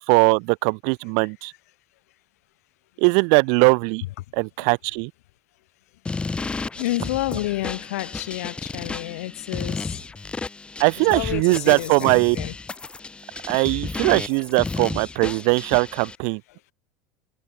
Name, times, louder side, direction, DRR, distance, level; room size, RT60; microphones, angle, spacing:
voice 1, 0.1-1.5 3.0-4.0 4.3-5.1 10.8-12.4 13.5-16.4, right 40 dB or more, 65° right, 1.3 m, -20 dB
sound 1, 6.1-16.2, left 3 dB, 15° left, 4.1 m, -33 dB
voice 2, 6.8-9.9 11.0-12.5, left 17 dB, 85° left, 4.2 m, -29 dB
supercardioid pair, 135°, 8 cm